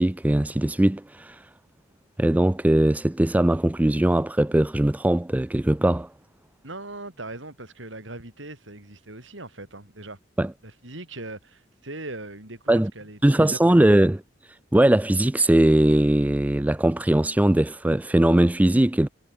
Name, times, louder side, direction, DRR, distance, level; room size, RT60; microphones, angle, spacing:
voice 1, 0.0-1.4 2.2-6.1 10.4-10.5 12.7-12.9 13.2-14.2 14.7-19.1, right 1 dB, 10° right, 0.4 m, -20 dB
voice 2, 6.6-10.2 10.6-13.9, right 2 dB, 75° right, 7.2 m, -39 dB
head